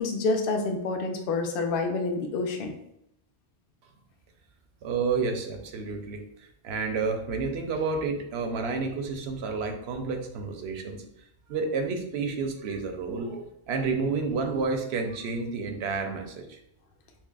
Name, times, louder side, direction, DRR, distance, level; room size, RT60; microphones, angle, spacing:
voice 1, 0.0-2.7, left 3 dB, 65° left, 4 dB, 0.7 m, -28 dB
voice 2, 4.8-6.2 6.6-11.0 11.5-16.6, right 4 dB, 80° right, 4 dB, 0.9 m, -30 dB
5.9 x 2.1 x 2.3 m, 0.78 s
omnidirectional pair, 1.1 m